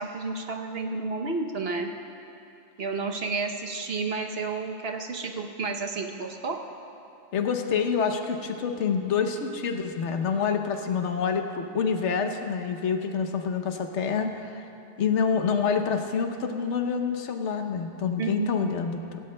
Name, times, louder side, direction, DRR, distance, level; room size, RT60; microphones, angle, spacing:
voice 1, 0.0-1.9 2.8-6.6 18.2-18.7, right 4 dB, 60° right, 2 dB, 1.0 m, -31 dB
voice 2, 7.3-14.6 15.0-19.2, left 6 dB, 80° left, 6 dB, 1.1 m, -27 dB
17.0 x 16.5 x 2.2 m, 2.7 s
omnidirectional pair, 1.2 m